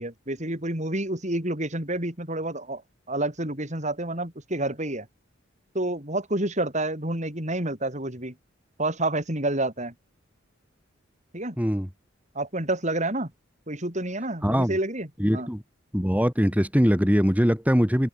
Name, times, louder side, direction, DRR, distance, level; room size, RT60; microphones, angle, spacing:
voice 1, 0.0-2.8 3.1-5.1 5.7-8.3 8.8-9.9 11.3-11.6 12.3-13.3 13.7-15.1 15.3-15.5, right 1 dB, 35° right, 6.1 m, -29 dB
voice 2, 11.6-11.9 14.4-14.8 15.2-15.6 15.9-18.1, equal, 10° right, 3.2 m, -22 dB
head